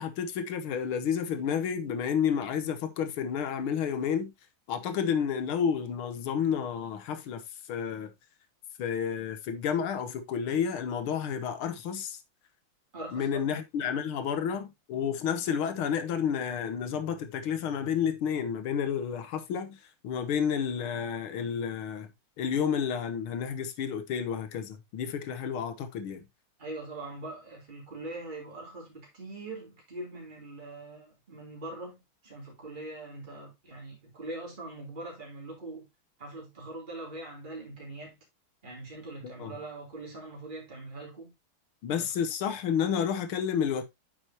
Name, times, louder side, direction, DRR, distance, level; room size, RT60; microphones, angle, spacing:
voice 1, 0.0-4.3 4.7-7.4 7.7-8.1 8.8-12.2 13.1-19.8 20.0-22.1 22.4-26.3 39.2-39.5 41.8-43.8, left 7 dB, 85° left, 2.0 m, -30 dB
voice 2, 12.9-13.4 26.6-35.9 36.2-38.2 38.6-41.3 42.0-42.1, right 2 dB, 20° right, 3.4 m, -42 dB
9.1 x 6.8 x 2.9 m
omnidirectional pair, 2.3 m